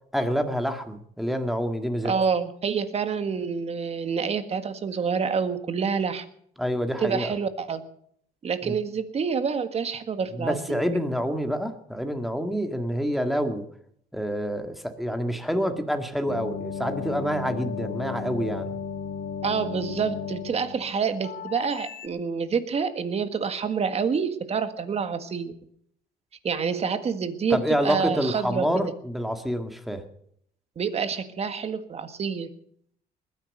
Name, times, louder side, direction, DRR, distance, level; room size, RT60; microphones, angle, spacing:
voice 1, 0.1-2.1 6.6-7.3 8.6-8.8 10.3-13.6 14.1-18.8 27.5-30.0, equal, ahead, 6 dB, 1.9 m, -27 dB
voice 2, 2.0-6.2 7.0-7.8 8.4-10.8 19.4-25.5 26.4-28.7 30.7-32.5, right 6 dB, 40° right, 10 dB, 1.7 m, -27 dB
sound 1, 16.3-22.1, left 7 dB, 60° left, 1.8 m, -35 dB
20.5 x 10.5 x 6.7 m, 0.68 s
cardioid pair, 110°, 17 cm